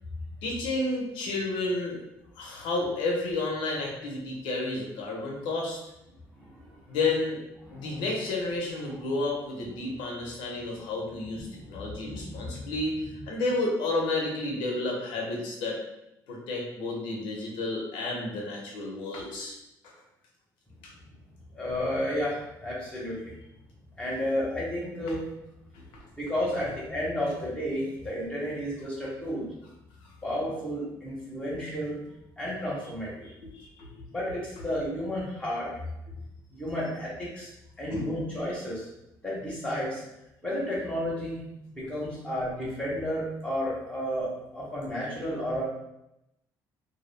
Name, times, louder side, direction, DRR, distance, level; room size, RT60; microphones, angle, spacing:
voice 1, 0.4-2.0 2.4-5.8 6.9-7.4 7.7-12.9 13.3-15.8 16.3-19.5 20.8-20.9 25.9-26.0 26.6-26.7 33.4-34.1 37.9-38.2, left 2 dB, 85° left, -1 dB, 0.6 m, -31 dB
voice 2, 6.4-6.8 7.6-7.9 11.4-12.7 21.5-23.2 24.0-25.2 26.2-29.5 30.2-32.0 32.4-33.3 34.1-35.7 36.5-37.5 37.8-38.9 39.2-40.0 40.4-41.4 41.7-45.6, equal, 15° left, -6 dB, 0.8 m, -32 dB
2.2 x 2.0 x 3.2 m, 0.87 s
cardioid pair, 105°, 8 cm